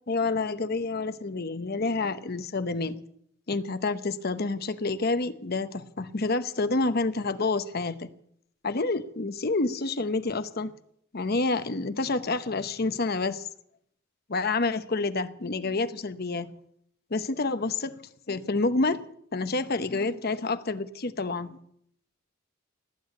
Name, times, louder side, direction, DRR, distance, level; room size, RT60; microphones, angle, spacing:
voice 1, 0.1-3.0 3.5-8.1 8.6-10.7 11.1-13.5 14.3-16.5 17.1-19.0 19.3-21.6, left 3 dB, 50° left, 0.9 m, -28 dB
19.0 x 8.6 x 8.3 m
head